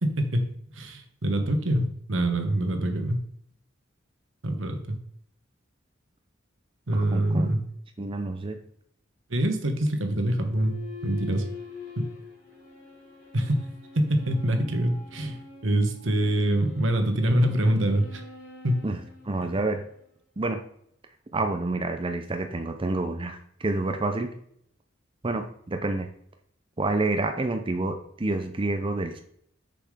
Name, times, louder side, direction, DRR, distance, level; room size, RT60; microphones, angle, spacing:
voice 1, 0.0-3.2 4.4-5.0 6.9-7.6 9.3-10.8 11.0-11.5 12.0-12.1 13.3-18.2 18.6-18.9, right 1 dB, 85° right, 6 dB, 1.3 m, -25 dB
voice 2, 6.9-7.5 8.0-8.6 18.8-19.0 19.2-19.8 20.4-20.6 21.3-24.3 25.2-26.1 26.8-29.2, right 2 dB, 30° right, 6 dB, 0.7 m, -28 dB
sound 1, 10.5-20.1, left 5 dB, 40° left, 3.1 m, -45 dB
6.8 x 5.8 x 5.0 m, 0.67 s
head